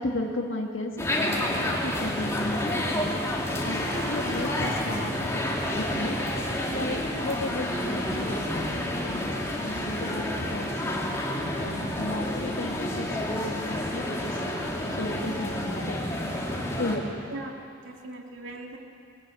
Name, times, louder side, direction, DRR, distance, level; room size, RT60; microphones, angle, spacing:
voice 1, 0.0-3.2 3.6-5.3 5.7-6.2 6.7-11.1 11.6-14.4 14.9-16.0 16.3-16.4 16.8-17.0, left 1 dB, 70° left, 2 dB, 1.9 m, -34 dB
sound 1, 1.0-17.0, left 1 dB, 15° left, 2.8 m, -29 dB
voice 2, 17.3-18.8, right 2 dB, 75° right, 1 dB, 2.4 m, -40 dB
21.5 x 18.0 x 9.0 m, 2.4 s
head